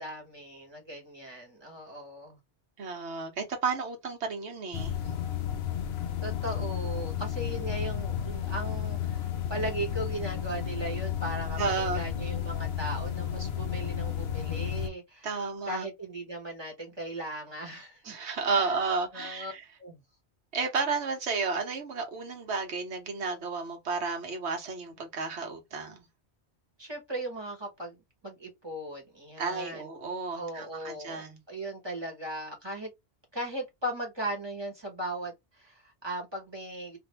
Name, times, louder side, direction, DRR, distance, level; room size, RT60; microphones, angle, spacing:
voice 1, 0.0-2.4 6.2-15.3 15.7-18.1 18.5-18.7 19.1-19.5 19.8-20.0 26.8-29.9 30.3-32.9 33.3-37.0, right 1 dB, 25° right, 1.2 m, -38 dB
voice 2, 2.8-5.0 11.6-12.0 15.2-15.8 18.0-19.6 20.5-26.0 29.4-31.4, right 4 dB, 80° right, 1.2 m, -32 dB
sound 1, 4.7-14.9, left 9 dB, 70° left, 0.8 m, -32 dB
2.6 x 2.6 x 3.1 m
omnidirectional pair, 1.1 m